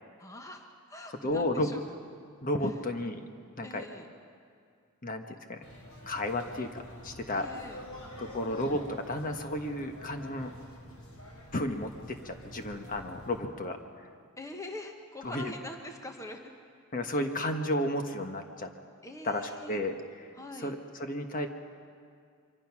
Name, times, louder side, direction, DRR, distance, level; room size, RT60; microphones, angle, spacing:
voice 1, 0.2-1.8 2.6-2.7 3.6-4.1 7.3-7.8 14.4-16.4 19.0-19.8 20.3-20.7, left 1 dB, 15° left, 4 dB, 1.2 m, -44 dB
voice 2, 1.2-1.7 2.4-3.2 3.6-3.9 5.0-5.2 5.5-5.6 6.1-7.5 8.2-10.5 11.5-13.8 15.2-15.5 16.9-18.7 19.2-20.3 20.6-21.5, left 1 dB, 40° left, 5 dB, 1.4 m, -32 dB
sound 1, 5.6-13.4, left 1 dB, 85° left, 4.9 m, -47 dB
25.0 x 24.5 x 6.1 m, 2.2 s
head